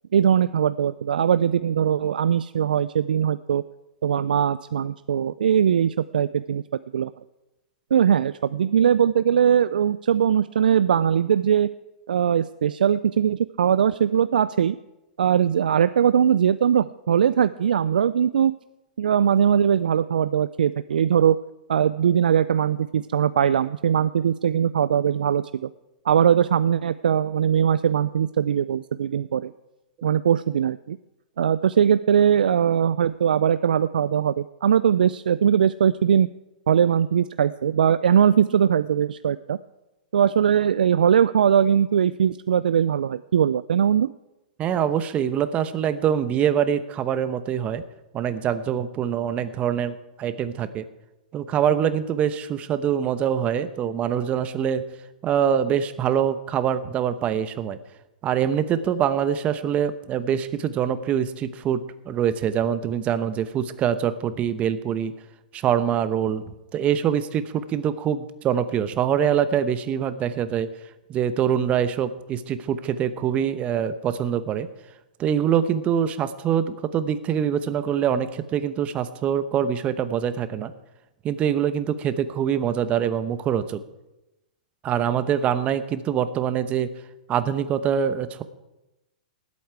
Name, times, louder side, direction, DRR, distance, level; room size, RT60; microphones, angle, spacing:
voice 1, 0.1-3.6 4.0-6.6 6.9-7.1 7.9-11.7 12.1-14.8 15.2-18.5 19.0-21.4 21.7-25.7 26.1-29.5 30.0-31.0 31.4-36.3 36.7-39.6 40.1-44.1, right 8 dB, 80° right, 15 dB, 0.3 m, -20 dB
voice 2, 44.6-47.8 48.1-50.8 51.3-54.8 55.2-57.8 58.2-65.1 65.5-66.4 66.7-70.7 71.1-74.7 75.2-80.7 81.2-83.8 84.8-86.9 87.3-88.4, right 9 dB, 30° right, 12 dB, 0.9 m, -24 dB
19.0 x 8.4 x 4.7 m, 0.98 s
hypercardioid pair, 120°, 5 cm